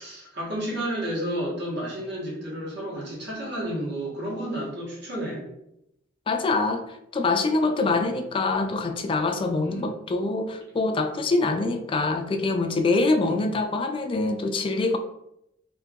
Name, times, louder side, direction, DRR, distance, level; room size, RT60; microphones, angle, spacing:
voice 1, 0.0-5.4 7.8-8.0 9.6-9.9 11.4-11.6 13.2-13.5, right 1 dB, 60° right, -5 dB, 1.4 m, -32 dB
voice 2, 6.3-15.0, left 3 dB, 25° left, 7 dB, 0.3 m, -25 dB
2.9 x 2.8 x 3.5 m, 0.82 s
head